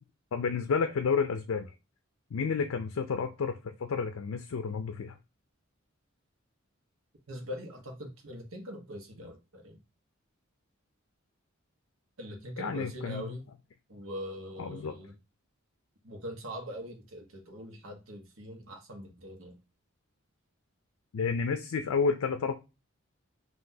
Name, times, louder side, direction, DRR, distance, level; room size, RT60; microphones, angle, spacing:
voice 1, 0.3-1.7 2.3-5.2 12.6-13.3 14.6-14.9 21.1-22.5, left 5 dB, 80° left, 0.4 m, -30 dB
voice 2, 7.3-9.8 12.2-13.5 13.9-15.2 16.0-19.6, equal, 75° right, 1.2 m, -42 dB
5.7 x 2.8 x 2.7 m
head